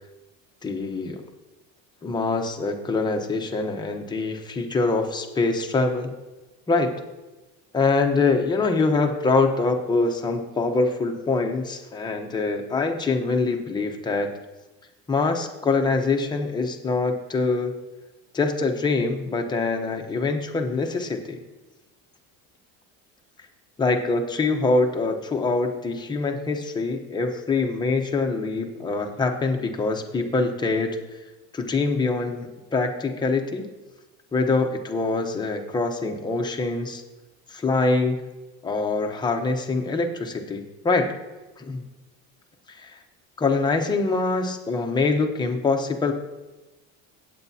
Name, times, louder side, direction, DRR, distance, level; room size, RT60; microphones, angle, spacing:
voice 1, 0.6-1.2 2.0-6.1 6.7-6.9 7.7-14.3 15.1-17.7 18.3-21.4 23.8-31.0 31.5-33.7 34.3-37.0 37.5-38.2 38.6-41.1 41.6-41.8 42.7-43.0 43.4-46.1, left 3 dB, 10° left, 3 dB, 0.8 m, -24 dB
16.0 x 8.4 x 2.7 m, 1.1 s
cardioid pair, 170°, 36 cm